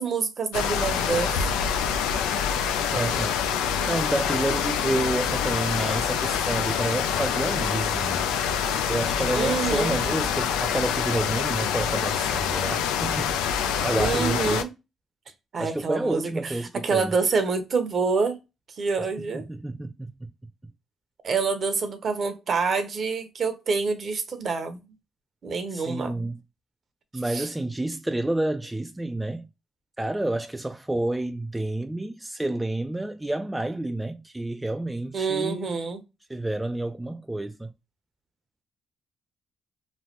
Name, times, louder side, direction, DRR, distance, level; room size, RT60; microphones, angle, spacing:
voice 1, 0.0-1.5 9.3-10.0 13.9-14.7 15.5-16.5 16.8-18.4 18.8-19.4 21.2-24.8 25.4-26.3 27.3-27.5 35.1-36.0, right 5 dB, 55° right, 0.8 m, -27 dB
sound 1, 0.5-14.6, left 7 dB, 85° left, 0.3 m, -26 dB
voice 2, 2.9-3.5 3.9-8.3 8.9-14.6 15.6-17.1 19.2-20.3 25.7-26.4 27.1-29.5 30.0-35.8 36.3-37.7, right 1 dB, 10° right, 0.3 m, -29 dB
3.1 x 2.1 x 2.9 m
supercardioid pair, 55°, 0 cm